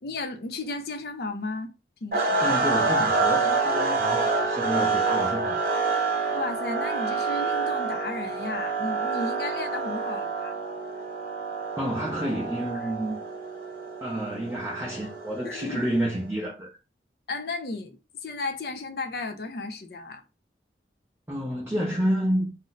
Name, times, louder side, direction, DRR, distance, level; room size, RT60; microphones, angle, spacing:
voice 1, 0.0-1.7 2.0-2.5 6.3-10.6 12.7-12.9 15.4-15.8 17.3-20.2, left 3 dB, 60° left, 0.5 m, -34 dB
sound 1, 2.1-16.2, right 3 dB, 50° right, 0.7 m, -27 dB
voice 2, 2.4-5.8 11.8-13.2 14.0-16.7 21.3-22.6, equal, 15° right, 0.5 m, -29 dB
2.5 x 2.0 x 3.9 m
head